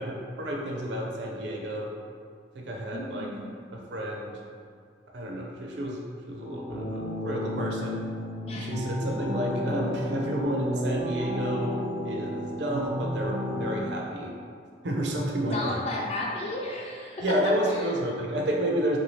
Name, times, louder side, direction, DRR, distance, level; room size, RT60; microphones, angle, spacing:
voice 1, 0.0-1.9 2.5-3.3 3.7-4.4 5.1-6.0 6.3-8.0 8.5-11.8 12.0-14.3 14.8-15.8 17.2-19.0, equal, 65° right, -1 dB, 0.5 m, -30 dB
voice 2, 2.9-3.5 8.5-9.3 15.5-17.4 17.7-17.9, left 2 dB, 35° left, -2 dB, 0.4 m, -34 dB
sound 1, 6.4-13.8, equal, 65° left, 0.9 m, -33 dB
3.4 x 2.6 x 3.1 m, 2.2 s
head